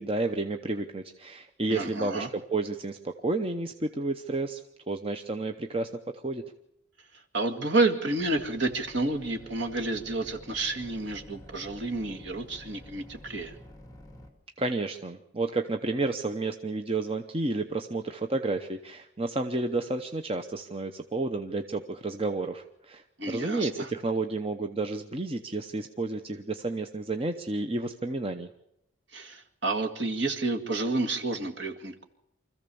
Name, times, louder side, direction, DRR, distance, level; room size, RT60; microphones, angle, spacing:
voice 1, 0.0-4.6 4.9-6.4 14.6-28.5, right 2 dB, 25° right, 6 dB, 0.8 m, -31 dB
voice 2, 1.7-2.3 7.3-13.5 23.2-23.9 29.1-32.0, right 2 dB, 55° right, 4 dB, 2.1 m, -30 dB
sound 1, 8.2-14.3, left 1 dB, 15° left, 2.3 m, -50 dB
25.0 x 15.0 x 7.0 m, 0.82 s
head